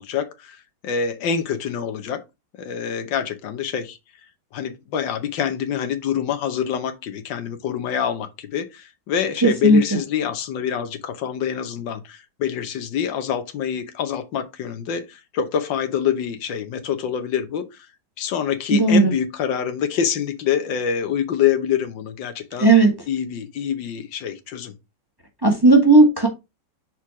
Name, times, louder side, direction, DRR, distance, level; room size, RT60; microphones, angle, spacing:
voice 1, 0.0-2.2 2.6-4.0 4.5-17.9 18.2-22.7 23.1-24.7, left 8 dB, 85° left, 1.6 m, -26 dB
voice 2, 9.4-9.8 18.8-19.1 22.6-22.9 25.4-26.3, right 2 dB, 15° right, 1.4 m, -14 dB
6.1 x 4.3 x 4.8 m
omnidirectional pair, 2.0 m